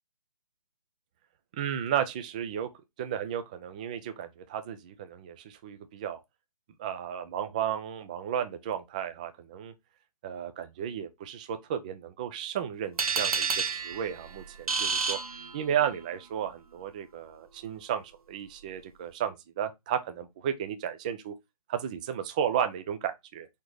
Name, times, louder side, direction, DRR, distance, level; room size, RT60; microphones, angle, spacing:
voice 1, 1.5-2.7 3.0-6.2 6.8-9.7 10.2-15.2 15.5-21.3 21.7-23.5, right 9 dB, 10° right, 0.3 m, -33 dB
sound 1, 13.0-16.0, right 5 dB, 65° right, 1.5 m, -30 dB
4.9 x 4.3 x 4.6 m
figure-of-eight pair, 140°, 21 cm